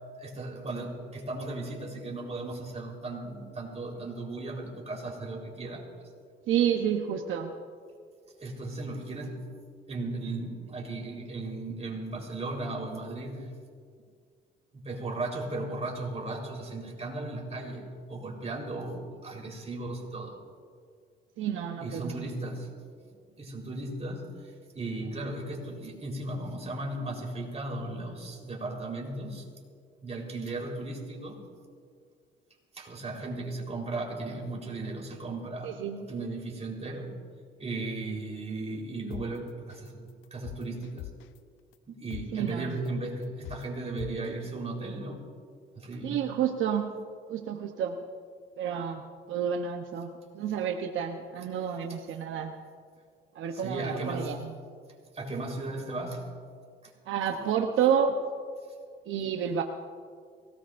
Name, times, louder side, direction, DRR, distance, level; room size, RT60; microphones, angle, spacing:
voice 1, 0.2-6.0 8.4-9.4 9.9-13.5 14.7-20.4 21.8-22.7 23.0-29.5 30.0-31.4 32.7-35.7 36.1-37.1 37.6-40.0 40.3-41.1 41.9-45.2 45.8-46.2 51.9-52.0 53.5-54.4 55.1-56.3 56.8-56.9 57.3-57.4, right 2 dB, 35° right, -1 dB, 4.0 m, -36 dB
voice 2, 6.5-7.5 21.4-22.3 35.6-36.1 42.3-42.7 46.0-46.9 47.3-48.0 48.6-49.0 49.3-52.5 53.3-54.4 57.1-58.2 59.1-59.6, right 8 dB, 80° right, 4 dB, 0.9 m, -29 dB
sound 1, 39.1-39.3 39.7-39.9 40.2-41.4 41.7-41.8 42.1-42.3 42.7-42.9 43.2-43.6 44.0-44.1, left 16 dB, 85° left, 0.4 m, -40 dB
24.0 x 18.0 x 2.6 m, 2.1 s
cardioid pair, 90°, 20 cm